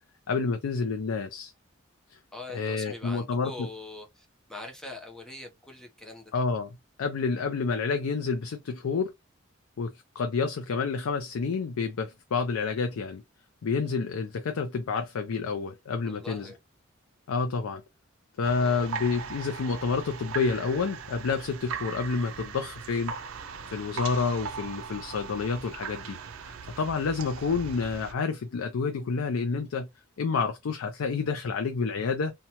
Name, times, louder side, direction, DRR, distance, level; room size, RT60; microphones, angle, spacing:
voice 1, 0.3-1.5 2.5-3.7 6.3-6.7 7.0-9.1 9.8-13.2 13.6-16.5 17.3-17.8 18.4-23.1 23.7-26.2 26.4-29.9 30.2-32.3, left 4 dB, 90° left, 0.4 m, -29 dB
voice 2, 2.3-6.3 16.0-16.6 18.6-18.9, left 2 dB, 5° left, 0.7 m, -43 dB
sound 1, 18.4-28.1, right 6 dB, 80° right, 0.5 m, -39 dB
2.8 x 2.2 x 2.8 m
head